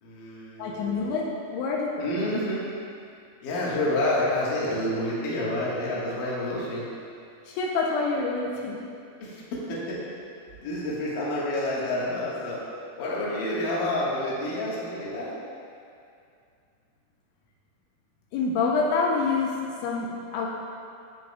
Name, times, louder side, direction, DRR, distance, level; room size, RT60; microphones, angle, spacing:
voice 1, 0.0-1.1 2.0-2.6 3.4-6.9 9.2-10.0 10.6-12.6 13.0-15.4, left 1 dB, 60° left, -7 dB, 2.4 m, -29 dB
voice 2, 0.6-1.3 1.5-1.9 7.5-8.8 18.3-19.5 19.8-20.5, left 4 dB, 85° left, -2 dB, 2.9 m, -26 dB
11.0 x 7.4 x 2.3 m, 2.4 s
omnidirectional pair, 5.4 m